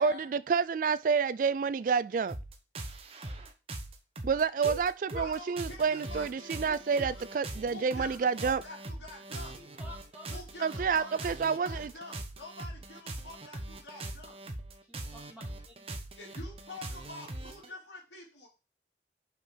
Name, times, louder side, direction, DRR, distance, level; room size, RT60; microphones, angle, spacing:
voice 1, 0.0-2.4 4.2-8.6 10.6-11.9, right 5 dB, 50° right, 0.3 m, -29 dB
sound 1, 2.3-17.7, right 1 dB, 35° right, 1.0 m, -41 dB
voice 2, 5.1-7.3 7.7-9.6 10.3-14.4 16.2-18.5, left 2 dB, 85° left, 3.0 m, -47 dB
voice 3, 9.5-11.3 13.9-14.0 14.8-15.8, equal, 5° right, 2.8 m, -52 dB
5.6 x 5.0 x 5.0 m
head